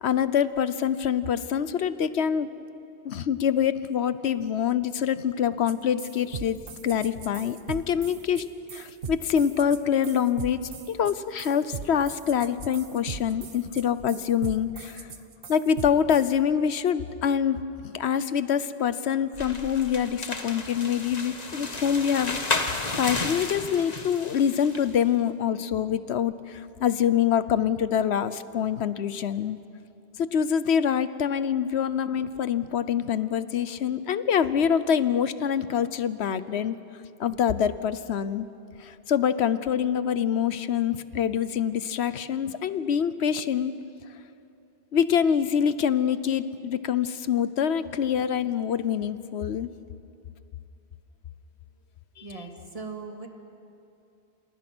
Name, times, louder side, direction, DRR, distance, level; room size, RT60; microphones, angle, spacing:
voice 1, 0.0-2.5 3.0-8.5 8.7-15.1 15.5-22.7 23.0-29.6 30.2-36.7 37.2-38.5 38.8-43.7 44.9-49.7 52.2-52.3, left 8 dB, 85° left, 14 dB, 1.1 m, -25 dB
sound 1, 5.7-5.8 6.0-16.3, right 5 dB, 60° right, 1.3 m, -39 dB
sound 2, 19.3-24.9, left 3 dB, 40° left, 1.5 m, -32 dB
voice 2, 52.2-53.3, right 4 dB, 35° right, 2 dB, 2.5 m, -39 dB
28.5 x 27.5 x 6.2 m, 2.6 s
omnidirectional pair, 1.1 m